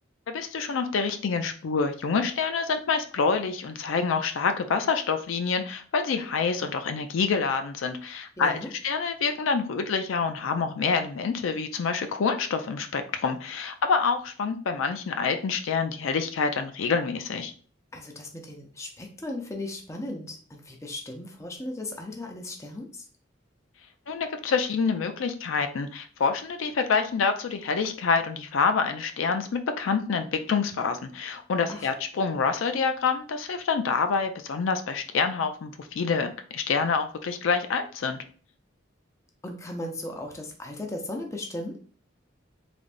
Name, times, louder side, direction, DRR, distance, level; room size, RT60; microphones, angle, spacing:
voice 1, 0.3-17.5 24.1-38.2, left 5 dB, 80° left, 7 dB, 0.4 m, -27 dB
voice 2, 8.4-8.7 17.9-23.1 31.7-31.9 39.4-41.8, left 1 dB, 15° left, 2 dB, 0.6 m, -36 dB
3.7 x 3.4 x 2.5 m, 0.43 s
head